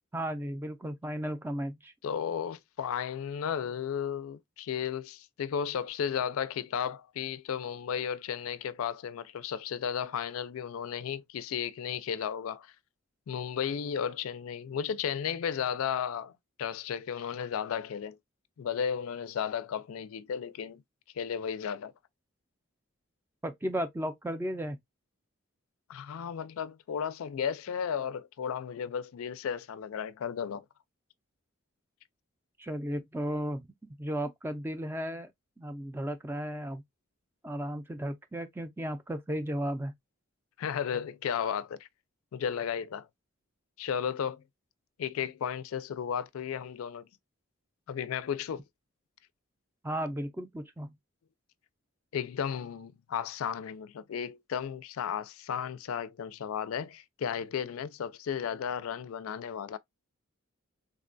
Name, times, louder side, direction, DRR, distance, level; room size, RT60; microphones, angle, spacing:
voice 1, 0.1-1.9 23.4-24.8 32.6-33.7 34.0-35.3 35.6-36.8 37.4-39.9 49.8-50.9, equal, 10° right, 0.3 m, -34 dB
voice 2, 2.0-12.7 13.3-16.3 16.6-18.2 18.6-20.8 21.2-21.9 25.9-30.6 40.6-41.9 42.3-43.1 43.8-44.4 45.0-47.1 47.9-48.6 52.1-59.8, left 8 dB, 80° left, 0.3 m, -34 dB
3.6 x 2.2 x 2.4 m
head